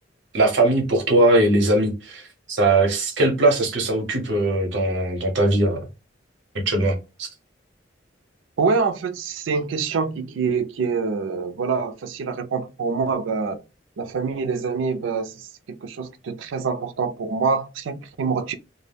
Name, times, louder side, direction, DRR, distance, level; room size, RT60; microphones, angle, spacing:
voice 1, 0.3-5.8 6.5-7.3, right 2 dB, 65° right, 0.8 m, -20 dB
voice 2, 8.6-13.6 14.0-18.6, right 5 dB, 80° right, 0.4 m, -25 dB
2.2 x 2.1 x 3.3 m
head